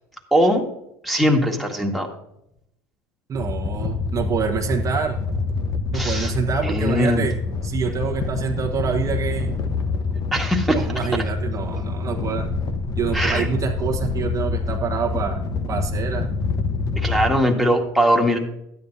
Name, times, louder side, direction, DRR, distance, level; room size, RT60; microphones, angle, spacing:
voice 1, 0.3-0.6 1.0-2.1 5.9-6.3 6.6-7.3 10.3-10.9 13.1-13.5 17.0-18.4, equal, ahead, 2 dB, 1.9 m, -20 dB
sound 1, 3.3-17.3, left 4 dB, 45° left, 1.2 m, -26 dB
voice 2, 3.3-5.2 5.9-7.3 7.6-9.5 10.6-12.5 13.0-15.4 15.7-16.3, right 7 dB, 35° right, 0 dB, 1.2 m, -26 dB
12.5 x 9.4 x 2.8 m, 0.79 s
hypercardioid pair, 85°, 9 cm